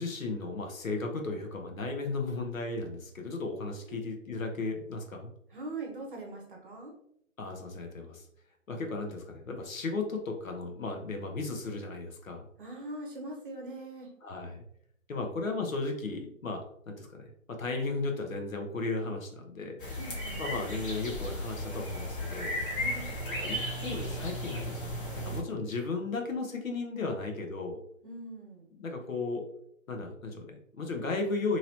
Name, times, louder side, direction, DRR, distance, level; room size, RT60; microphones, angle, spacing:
voice 1, 0.0-5.3 7.4-8.3 8.7-12.4 14.2-14.6 15.1-19.8 20.4-22.5 23.4-27.8 28.7-29.4 29.9-31.6, left 3 dB, 75° left, 3 dB, 0.9 m, -35 dB
voice 2, 5.5-6.9 12.6-14.1 16.1-16.2 20.0-20.4 22.7-23.1 28.0-28.7, right 2 dB, 40° right, 0 dB, 0.8 m, -42 dB
sound 1, 19.8-25.4, equal, 40° left, 1.1 m, -35 dB
2.9 x 2.8 x 2.7 m, 0.70 s
figure-of-eight pair, 150°, 40 cm